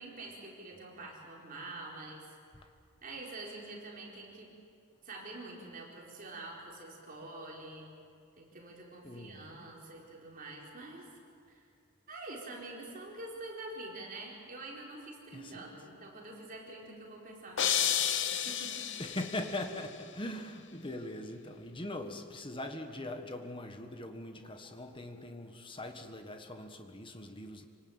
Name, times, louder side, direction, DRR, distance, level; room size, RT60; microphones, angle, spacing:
voice 1, 0.0-2.3 2.6-2.7 3.0-4.5 5.0-7.9 8.4-11.2 11.5-11.7 12.1-18.0 18.3-18.8, right 2 dB, 40° right, -2 dB, 4.4 m, -46 dB
voice 2, 9.0-9.7 15.3-15.7 19.0-27.7, left 1 dB, 25° left, 5 dB, 1.5 m, -41 dB
sound 1, 17.6-19.7, left 9 dB, 55° left, 1.0 m, -31 dB
26.5 x 18.5 x 8.9 m, 2.3 s
head